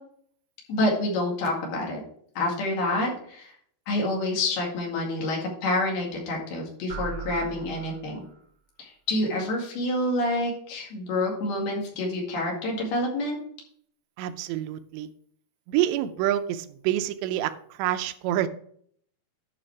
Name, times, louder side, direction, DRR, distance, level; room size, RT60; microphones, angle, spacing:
voice 1, 0.7-2.0 2.4-3.5 3.9-8.2 8.8-13.4, left 1 dB, 65° left, -1 dB, 4.0 m, -27 dB
sound 1, 6.9-8.5, right 7 dB, 65° right, 1.5 m, -39 dB
voice 2, 14.2-15.1 15.7-18.5, right 12 dB, 85° right, 10 dB, 2.8 m, -27 dB
11.0 x 5.1 x 4.7 m, 0.62 s
omnidirectional pair, 5.1 m